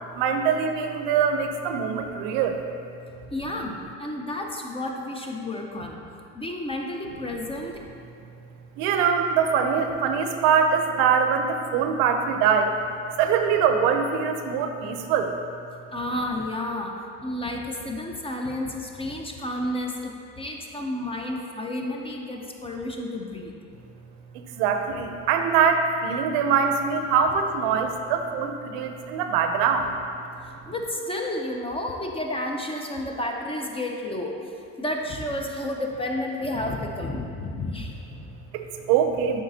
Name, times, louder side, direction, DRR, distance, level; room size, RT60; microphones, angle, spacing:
voice 1, 0.1-2.6 8.8-15.3 24.3-30.0 38.5-39.4, right 6 dB, 80° right, 6 dB, 0.6 m, -23 dB
voice 2, 3.3-6.1 6.3-7.8 15.9-23.6 30.4-38.3, left 1 dB, 15° left, 1 dB, 0.5 m, -31 dB
7.3 x 4.8 x 2.7 m, 2.5 s
supercardioid pair, 100°, 38 cm